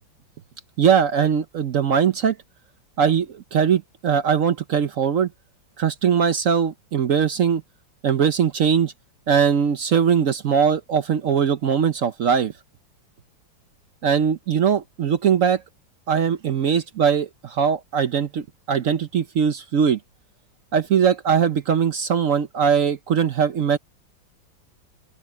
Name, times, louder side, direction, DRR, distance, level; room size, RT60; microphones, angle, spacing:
voice 1, 0.8-2.4 3.0-5.3 5.8-7.6 8.0-8.9 9.3-12.5 14.0-15.6 16.1-20.0 20.7-23.8, right 7 dB, 60° right, 0.9 m, -20 dB
open air
omnidirectional pair, 2.1 m